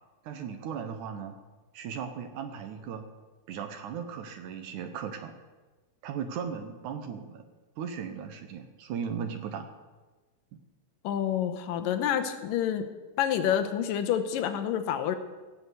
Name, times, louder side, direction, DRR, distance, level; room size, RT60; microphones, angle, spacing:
voice 1, 0.2-1.4 1.7-3.1 3.5-5.3 6.0-7.4 7.8-9.7, right 7 dB, 70° right, 7 dB, 2.2 m, -37 dB
voice 2, 11.0-12.9 13.2-15.2, left 9 dB, 85° left, 8 dB, 2.6 m, -28 dB
16.5 x 6.0 x 8.1 m, 1.3 s
omnidirectional pair, 3.9 m